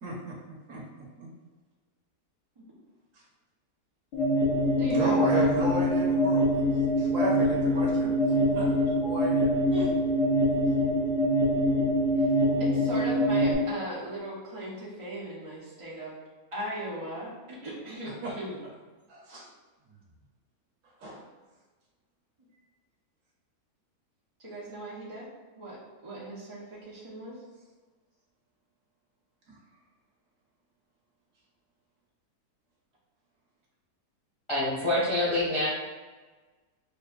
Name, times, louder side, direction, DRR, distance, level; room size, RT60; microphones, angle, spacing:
voice 1, 0.0-0.3 0.7-0.8 1.2-1.3 4.9-6.5 6.9-8.1 8.5-9.5 18.2-18.3 19.1-19.5 21.0-21.2 29.5-29.6, right 1 dB, 60° right, -3 dB, 1.1 m, -33 dB
sound 1, 4.1-13.5, equal, 85° left, 1.6 m, -24 dB
voice 2, 4.8-5.5 8.3-8.6 9.7-9.9 12.2-12.3 12.6-16.2 16.5-18.6 24.4-25.3 25.6-27.4, equal, 45° right, -7 dB, 0.4 m, -38 dB
voice 3, 34.5-35.7, left 1 dB, 30° left, -7 dB, 0.6 m, -26 dB
5.5 x 2.5 x 2.4 m, 1.3 s
omnidirectional pair, 1.7 m